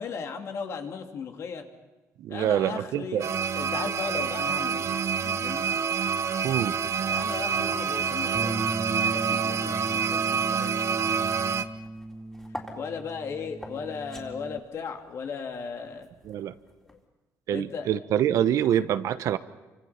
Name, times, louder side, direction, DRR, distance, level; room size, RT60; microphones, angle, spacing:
voice 1, 0.0-1.6 2.3-3.2 3.6-4.8 5.2-5.7 7.1-8.7 8.9-10.7 12.8-16.1 16.9-17.0 17.5-17.9, left 5 dB, 55° left, 4 dB, 2.8 m, -36 dB
voice 2, 2.2-3.3 6.4-6.8 16.2-16.5 17.5-19.4, right 10 dB, 70° right, 12 dB, 1.1 m, -25 dB
sound 1, 3.2-11.6, right 7 dB, 50° right, 1.0 m, -27 dB
sound 2, 6.8-8.9 9.2-17.0, left 1 dB, 10° left, 3.9 m, -46 dB
Bass guitar, 8.3-14.6, right 1 dB, 10° right, 0.9 m, -37 dB
28.5 x 25.5 x 5.9 m, 1.2 s
cardioid pair, 135°, 6 cm